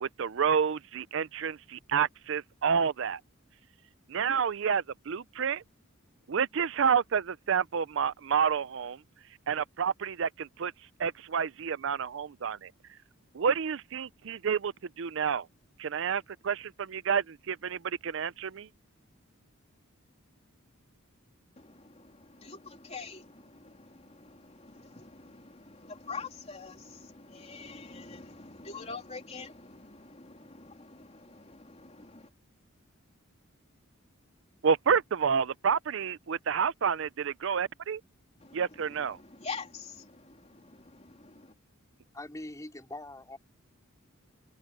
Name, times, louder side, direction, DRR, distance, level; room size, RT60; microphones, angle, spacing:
voice 1, 0.0-3.2 4.1-5.6 6.3-9.0 9.5-10.7 11.0-12.7 13.3-15.5 15.8-18.7 34.6-38.0 38.5-39.2, right 6 dB, 60° right, 0.5 m, -29 dB
voice 2, 21.6-32.3 38.4-41.5, left 4 dB, 30° left, 3.4 m, -45 dB
voice 3, 42.1-43.4, left 1 dB, 15° left, 4.3 m, -42 dB
head